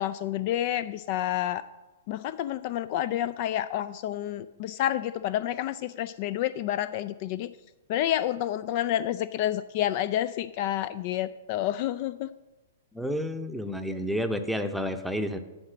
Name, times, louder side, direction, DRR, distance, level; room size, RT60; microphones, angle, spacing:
voice 1, 0.0-1.6 2.1-7.5 7.9-12.3, left 12 dB, 45° left, 15 dB, 0.3 m, -29 dB
voice 2, 12.9-15.4, equal, ahead, 7 dB, 0.7 m, -30 dB
9.7 x 4.8 x 6.1 m, 1.2 s
figure-of-eight pair, 110°, 0 cm